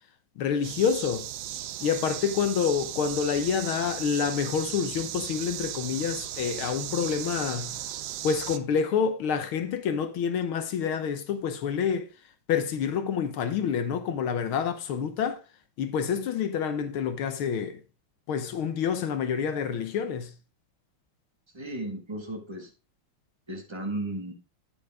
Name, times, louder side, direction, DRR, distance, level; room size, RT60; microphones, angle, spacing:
voice 1, 0.4-1.3 1.8-7.8 8.2-12.1 12.5-15.4 15.8-17.8 18.3-20.3, left 7 dB, 75° left, 1.8 m, -28 dB
sound 1, 0.6-8.6, right 12 dB, 80° right, 0.9 m, -36 dB
voice 2, 21.5-22.7 23.5-24.3, right 1 dB, 15° right, 1.5 m, -35 dB
8.9 x 8.3 x 3.5 m
omnidirectional pair, 2.4 m